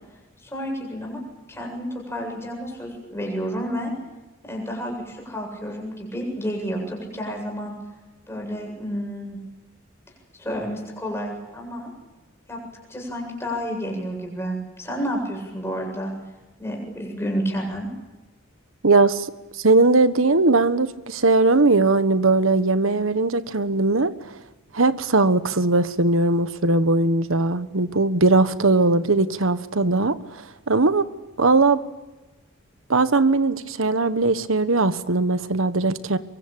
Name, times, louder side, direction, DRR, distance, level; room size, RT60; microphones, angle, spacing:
voice 1, 0.4-1.2 1.5-3.9 4.4-7.7 8.3-9.4 10.4-11.9 12.5-12.6 12.9-16.1 16.6-17.9, equal, 10° left, 0 dB, 7.7 m, -30 dB
voice 2, 18.8-19.3 19.6-24.1 24.7-31.1 31.4-31.8 32.9-36.2, right 3 dB, 80° right, 13 dB, 1.3 m, -19 dB
24.0 x 23.5 x 8.9 m, 1.1 s
head